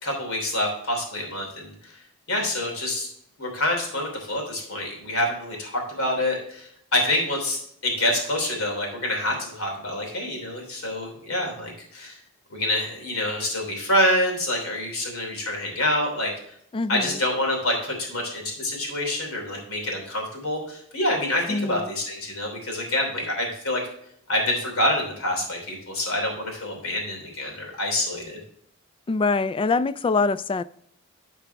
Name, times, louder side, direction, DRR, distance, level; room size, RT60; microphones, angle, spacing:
voice 1, 0.0-2.0 2.3-3.1 3.4-12.2 12.5-16.3 16.9-23.8 24.3-28.4, left 1 dB, 70° left, 0 dB, 3.1 m, -27 dB
voice 2, 16.7-17.2 21.5-21.9 29.1-30.6, left 4 dB, 25° left, 15 dB, 0.3 m, -24 dB
13.5 x 4.6 x 3.4 m, 0.70 s
head